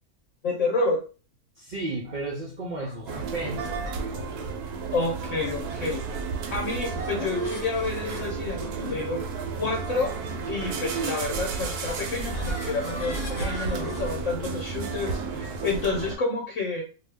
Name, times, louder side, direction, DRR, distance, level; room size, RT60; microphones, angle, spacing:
voice 1, 0.4-1.0 4.9-6.2 6.5-9.2 9.6-10.1 10.5-16.8, left 3 dB, 60° left, 0 dB, 1.0 m, -29 dB
voice 2, 1.6-3.8, right 2 dB, 60° right, -2 dB, 0.4 m, -33 dB
sound 1, 3.1-16.2, right 4 dB, 85° right, 1.1 m, -32 dB
sound 2, 6.5-14.0, equal, 30° left, 0.5 m, -38 dB
2.7 x 2.2 x 3.3 m, 0.35 s
omnidirectional pair, 1.6 m